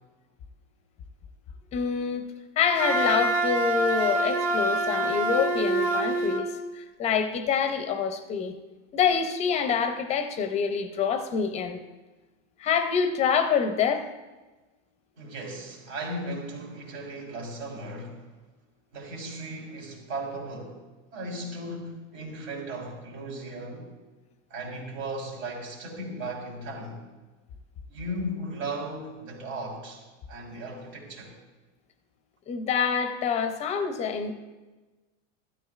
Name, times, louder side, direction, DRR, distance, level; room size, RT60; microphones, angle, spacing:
voice 1, 1.7-2.2 2.6-8.5 8.9-11.8 12.6-14.0 32.5-34.3, left 6 dB, 20° left, 8 dB, 0.5 m, -26 dB
Wind instrument woodwind instrument, 2.8-6.5, right 1 dB, 60° right, 1.8 m, -25 dB
voice 2, 15.2-18.3 18.9-20.8 21.1-23.9 24.5-27.0 27.9-31.4, right 1 dB, 85° right, -1 dB, 3.8 m, -36 dB
15.5 x 13.0 x 2.4 m, 1.2 s
supercardioid pair, 155°, 39 cm